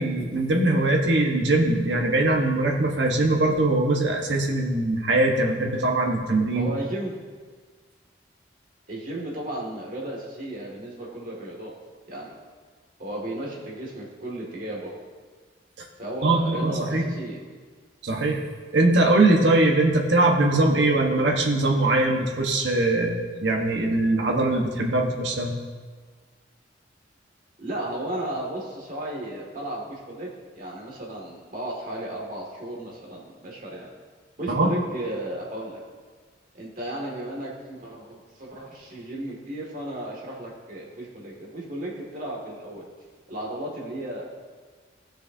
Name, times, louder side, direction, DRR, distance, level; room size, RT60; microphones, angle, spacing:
voice 1, 0.0-6.7 15.8-15.9 16.2-17.1 18.0-18.4 18.7-25.6 34.5-34.7, right 2 dB, 70° right, 1 dB, 1.2 m, -22 dB
voice 2, 6.5-7.1 8.9-11.7 12.1-12.4 13.0-15.0 16.0-17.4 27.6-30.3 30.5-33.9 34.4-35.8 36.5-42.9 43.3-44.2, right 1 dB, 45° right, -3 dB, 2.1 m, -34 dB
16.0 x 6.4 x 2.7 m, 1.5 s
head